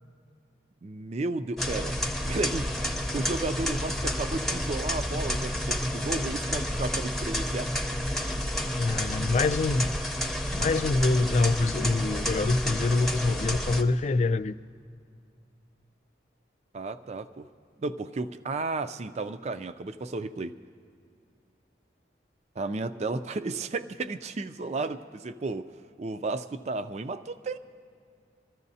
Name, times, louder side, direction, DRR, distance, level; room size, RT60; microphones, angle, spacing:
voice 1, 0.8-2.0 2.2-7.7 16.7-17.5 17.8-20.5 22.6-25.7 26.0-27.6, right 3 dB, 35° right, 11 dB, 0.4 m, -33 dB
sound 1, 1.6-13.8, left 1 dB, ahead, 0.6 m, -30 dB
voice 2, 8.8-9.9 10.5-14.5, left 3 dB, 40° left, 13 dB, 0.3 m, -25 dB
26.0 x 14.0 x 2.8 m, 2.4 s
head